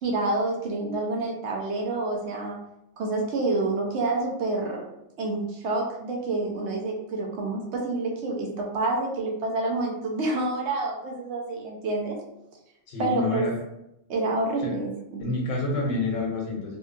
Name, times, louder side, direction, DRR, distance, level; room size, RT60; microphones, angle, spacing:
voice 1, 0.0-2.6 3.0-4.9 5.2-12.2 13.0-13.5 14.1-15.3, right 2 dB, 65° right, -1 dB, 0.8 m, -28 dB
voice 2, 12.9-13.5 14.6-14.7 15.2-16.8, left 2 dB, 90° left, -1 dB, 1.0 m, -28 dB
2.7 x 2.3 x 2.4 m, 0.85 s
omnidirectional pair, 1.3 m